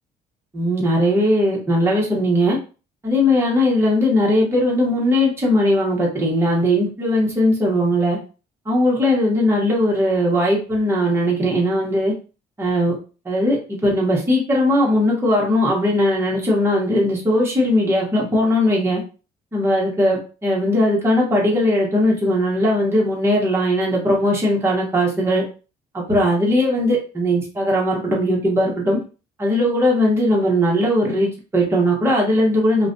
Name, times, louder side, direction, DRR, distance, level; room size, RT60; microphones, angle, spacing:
voice 1, 0.5-2.6 3.0-8.2 8.7-12.1 12.6-13.0 13.2-19.0 19.5-25.4 25.9-29.0 29.4-32.9, left 1 dB, 15° right, -3 dB, 0.9 m, -19 dB
2.4 x 2.1 x 2.5 m, 0.35 s
cardioid pair, 110°, 17 cm